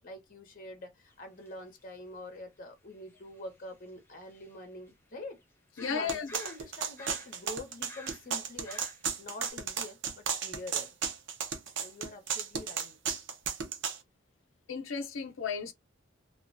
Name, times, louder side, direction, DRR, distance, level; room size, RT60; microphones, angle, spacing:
voice 1, 0.0-5.4 5.7-8.8 9.2-10.9 11.8-13.0, left 1 dB, 45° left, 0.8 m, -45 dB
sound 1, 1.1-1.2 1.5-1.6 3.1-4.9 5.4-5.5 5.8-7.5 7.8-9.2 9.4-9.5, left 2 dB, 10° left, 0.5 m, -51 dB
voice 2, 5.8-6.3 14.7-15.7, left 6 dB, 90° left, 0.6 m, -34 dB
sound 2, 6.1-14.0, right 7 dB, 65° right, 0.6 m, -34 dB
2.3 x 2.2 x 2.5 m
head